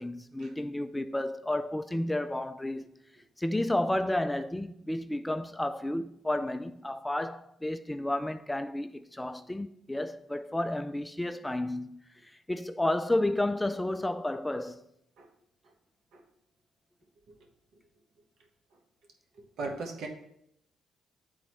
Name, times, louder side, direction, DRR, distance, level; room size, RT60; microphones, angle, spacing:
voice 1, 0.0-2.9 3.4-14.8, left 1 dB, 10° left, 0.3 m, -31 dB
voice 2, 19.6-20.1, right 3 dB, 70° right, 1.2 m, -36 dB
8.9 x 3.8 x 3.1 m
cardioid pair, 90°, 0 cm